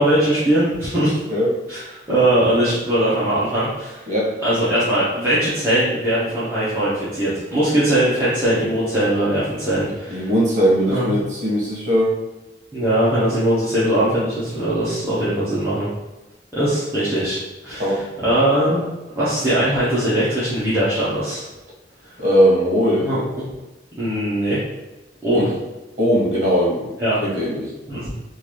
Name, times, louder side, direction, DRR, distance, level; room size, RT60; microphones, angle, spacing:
voice 1, 0.0-1.2 1.7-1.8 2.1-4.0 4.4-10.3 10.9-11.1 12.7-15.9 16.5-17.4 17.6-18.8 19.2-21.4 23.0-23.4 24.0-24.6 25.2-25.5 27.0-27.2 27.9-28.1, right 1 dB, 15° right, -12 dB, 0.9 m, -20 dB
voice 2, 10.1-12.2 17.8-18.0 22.2-23.1 25.3-25.5 26.0-26.9 27.2-27.7, equal, 45° right, -4 dB, 1.3 m, -19 dB
3.9 x 2.5 x 3.1 m, 1.1 s
head